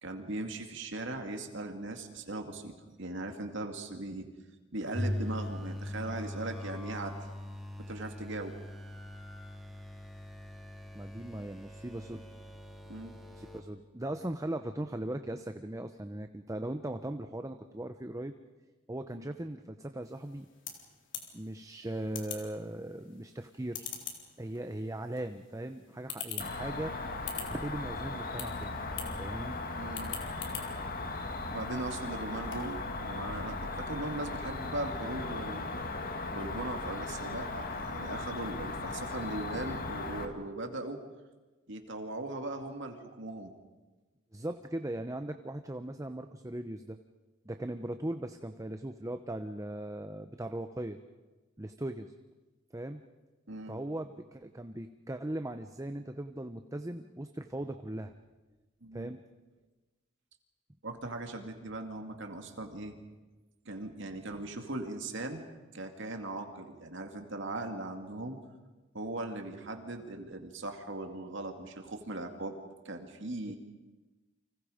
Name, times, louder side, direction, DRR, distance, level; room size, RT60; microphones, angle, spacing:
voice 1, 0.0-4.3 4.7-7.2 7.8-8.5 12.9-13.2 19.1-19.3 29.8-30.1 31.5-35.7 36.3-41.0 41.7-43.5 53.5-53.8 58.8-59.1 60.8-63.0 63.7-65.4 65.7-68.4 68.9-72.6 72.8-73.6, right 2 dB, 65° right, 5 dB, 2.4 m, -39 dB
sound 1, 4.9-13.6, left 1 dB, ahead, 3.2 m, -41 dB
voice 2, 10.9-12.2 13.3-18.3 18.9-20.5 21.3-23.9 24.4-26.9 27.4-28.8 29.2-29.5 44.3-47.0 47.5-51.0 51.6-52.1 52.7-53.0 53.7-58.1 58.9-59.2 73.5-73.6, right 1 dB, 15° right, 8 dB, 0.8 m, -39 dB
sound 2, 20.0-32.8, left 8 dB, 65° left, 3.8 m, -46 dB
Cricket, 26.4-40.3, left 3 dB, 45° left, 2.1 m, -37 dB
30.0 x 25.5 x 5.1 m, 1.2 s
head